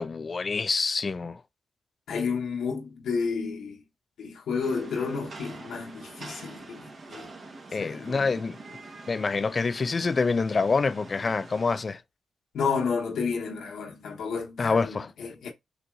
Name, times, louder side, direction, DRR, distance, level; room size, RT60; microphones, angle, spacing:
voice 1, 0.0-1.4 7.7-8.6 9.1-12.0 14.6-15.1, left 4 dB, 45° left, 0.4 m, -26 dB
voice 2, 2.1-3.8 4.2-7.3 7.8-8.4 12.5-15.5, left 5 dB, 85° left, 1.1 m, -31 dB
Rain, 4.6-11.8, right 3 dB, 55° right, 1.3 m, -45 dB
6.2 x 2.9 x 2.5 m
cardioid pair, 60°, 0 cm